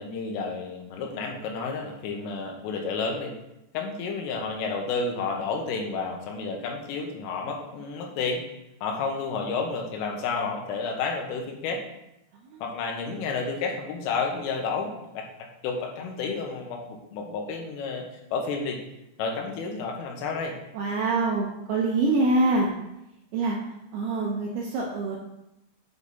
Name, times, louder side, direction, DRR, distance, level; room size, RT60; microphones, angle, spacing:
voice 1, 0.0-3.3 3.7-8.4 8.8-11.8 12.6-15.3 15.6-18.1 18.3-18.8 19.2-20.6, left 4 dB, 85° left, 1 dB, 3.7 m, -31 dB
voice 2, 20.7-22.7 23.3-23.6 23.9-25.2, right 2 dB, 80° right, -2 dB, 2.3 m, -25 dB
8.8 x 4.9 x 4.1 m, 0.87 s
omnidirectional pair, 5.7 m